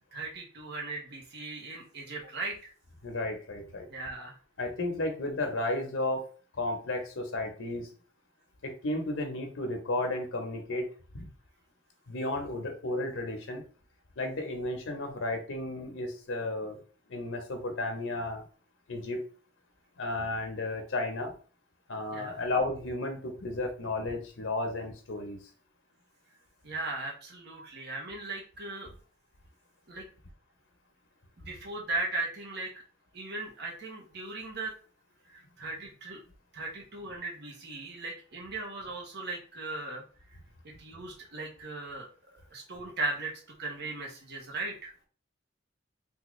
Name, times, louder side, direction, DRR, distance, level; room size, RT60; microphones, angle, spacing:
voice 1, 0.1-2.7 3.9-4.4 22.1-22.4 26.6-28.9 29.9-30.1 31.4-32.8 33.1-34.7 35.2-36.2 36.5-40.0 40.6-42.1 42.5-44.9, right 2 dB, 60° right, -1 dB, 0.9 m, -38 dB
voice 2, 3.0-3.9 4.6-7.9 8.6-10.9 12.1-13.6 14.2-16.8 17.1-18.4 18.9-19.2 20.0-21.3 21.9-25.4, left 2 dB, 85° left, 4 dB, 0.8 m, -33 dB
3.5 x 2.3 x 3.0 m, 0.39 s
head